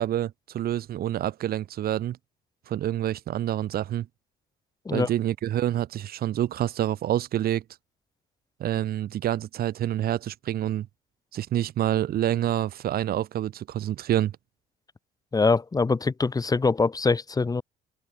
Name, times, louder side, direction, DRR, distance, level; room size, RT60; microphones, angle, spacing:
voice 1, 0.0-2.2 2.7-4.1 4.9-7.6 8.6-10.9 11.3-14.3, right 12 dB, 65° right, 7.1 m, -27 dB
voice 2, 15.3-17.6, left 4 dB, 20° left, 2.4 m, -23 dB
open air
cardioid pair, 110°, 17 cm